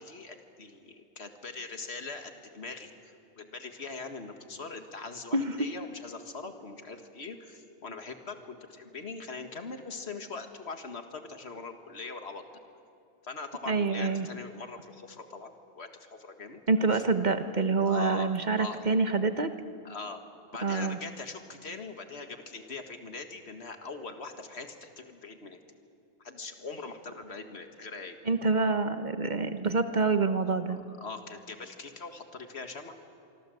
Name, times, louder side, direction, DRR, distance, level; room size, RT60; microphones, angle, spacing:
voice 1, 0.0-12.4 13.2-16.6 16.9-17.0 17.8-18.8 19.8-20.2 20.5-25.6 26.2-28.2 30.7-32.9, left 4 dB, 70° left, 6 dB, 2.1 m, -42 dB
voice 2, 13.7-14.3 16.7-19.5 20.6-21.0 28.3-30.8, right 4 dB, 40° right, 9 dB, 1.3 m, -26 dB
25.5 x 25.0 x 7.9 m, 2.5 s
omnidirectional pair, 1.2 m